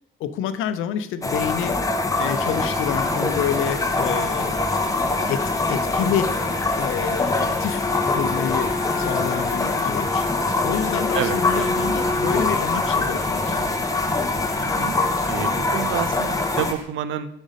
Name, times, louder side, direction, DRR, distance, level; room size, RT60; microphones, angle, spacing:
voice 1, 0.2-1.8 2.2-4.6 5.3-6.3 6.7-10.3 10.6-13.8, left 9 dB, 85° left, 12 dB, 0.6 m, -28 dB
sound 1, 1.2-16.7, left 2 dB, 15° left, 0.7 m, -24 dB
sound 2, 2.1-16.8, right 1 dB, 35° right, 2.3 m, -42 dB
Wind instrument woodwind instrument, 7.6-12.5, left 3 dB, 40° left, 0.9 m, -30 dB
voice 2, 14.6-14.9 15.3-17.3, right 10 dB, 75° right, 13 dB, 0.5 m, -28 dB
5.2 x 5.0 x 5.2 m, 0.78 s
cardioid pair, 90°, 20 cm